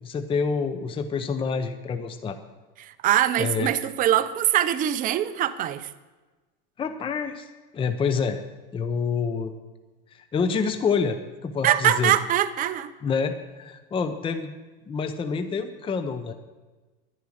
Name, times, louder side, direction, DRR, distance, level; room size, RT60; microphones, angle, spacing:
voice 1, 0.0-2.4 3.4-3.7 6.8-7.5 7.7-8.4 8.7-9.5 10.1-12.1 13.0-14.5 14.9-16.3, left 5 dB, 20° left, 9 dB, 0.7 m, -27 dB
voice 2, 2.8-5.9 11.6-12.9, right 11 dB, 30° right, 12 dB, 0.5 m, -23 dB
11.0 x 10.5 x 6.3 m, 1.2 s
supercardioid pair, 125°, 30 cm